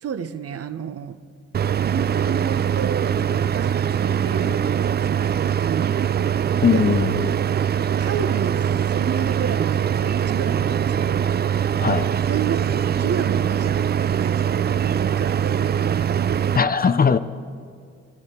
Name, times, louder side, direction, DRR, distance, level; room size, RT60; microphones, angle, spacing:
voice 1, 0.0-1.2 1.8-6.2 6.7-7.3 8.0-11.4 12.3-16.7, right 7 dB, 55° right, 0.8 m, -31 dB
sound 1, 1.5-16.6, right 8 dB, 35° right, 0.4 m, -22 dB
voice 2, 6.6-7.3 11.8-12.1 16.5-17.2, left 6 dB, 30° left, 0.5 m, -19 dB
24.5 x 11.0 x 4.4 m
cardioid pair, 75°, 29 cm